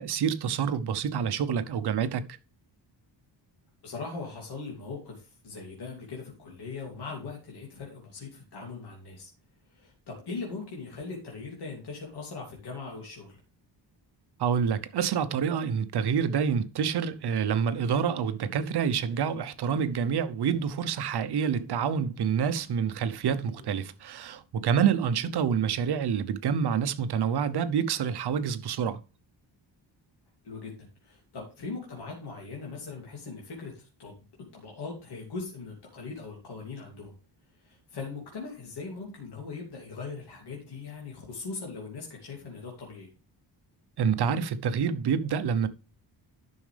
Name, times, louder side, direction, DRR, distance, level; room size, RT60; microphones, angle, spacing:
voice 1, 0.0-2.2 14.4-29.0 44.0-45.7, right 7 dB, 60° right, 0.9 m, -27 dB
voice 2, 3.8-9.3 9.7-13.4 23.6-23.7 30.4-34.1 34.5-37.1 37.6-43.1, left 4 dB, 60° left, 2.8 m, -40 dB
11.0 x 6.3 x 3.4 m
wide cardioid pair, 175°, 44 cm